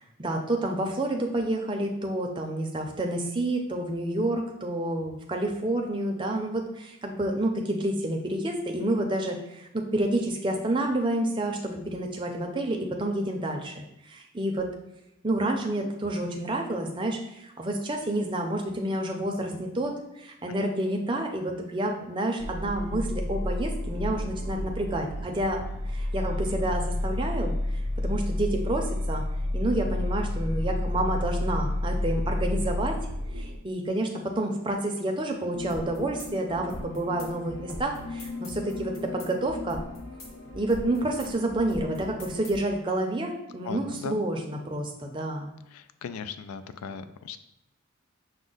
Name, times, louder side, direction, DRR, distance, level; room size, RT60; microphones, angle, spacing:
voice 1, 0.0-14.7 15.2-25.6 25.9-27.5 28.0-29.2 29.5-33.0 33.3-39.8 40.5-45.5, right 1 dB, 25° right, 2 dB, 0.5 m, -29 dB
sound 1, 22.4-33.6, left 1 dB, 75° right, 0.5 m, -30 dB
sound 2, 35.5-42.6, left 2 dB, 75° left, 0.9 m, -39 dB
voice 2, 43.6-44.2 45.7-47.4, left 6 dB, 90° left, 11 dB, 0.3 m, -38 dB
6.1 x 2.1 x 3.8 m, 0.85 s
head